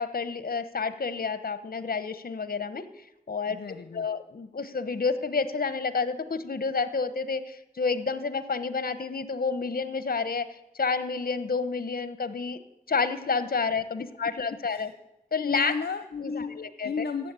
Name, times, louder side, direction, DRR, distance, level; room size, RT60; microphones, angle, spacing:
voice 1, 0.0-2.8 3.3-3.6 3.9-12.6 12.9-14.9 15.3-15.7 16.1-16.9, left 4 dB, 60° left, 12 dB, 1.1 m, -29 dB
voice 2, 3.5-4.1 14.7-14.9 15.4-16.6 16.8-17.3, left 5 dB, 80° left, 9 dB, 0.7 m, -33 dB
14.5 x 8.5 x 9.0 m, 0.94 s
wide cardioid pair, 70°, 17 cm